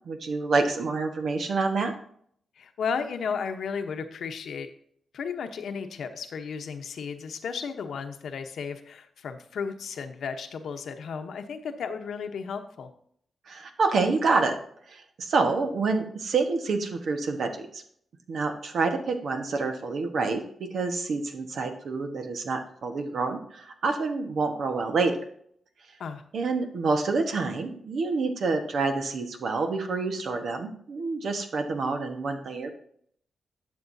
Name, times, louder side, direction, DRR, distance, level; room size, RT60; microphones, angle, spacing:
voice 1, 0.0-1.9 13.5-14.5 14.9-17.8 18.3-25.1 26.3-32.7, right 4 dB, 75° right, 5 dB, 1.3 m, -27 dB
voice 2, 2.6-4.7 5.1-12.9 26.0-26.2, left 6 dB, 85° left, 7 dB, 0.9 m, -34 dB
12.0 x 6.8 x 2.7 m, 0.64 s
cardioid pair, 85°, 0 cm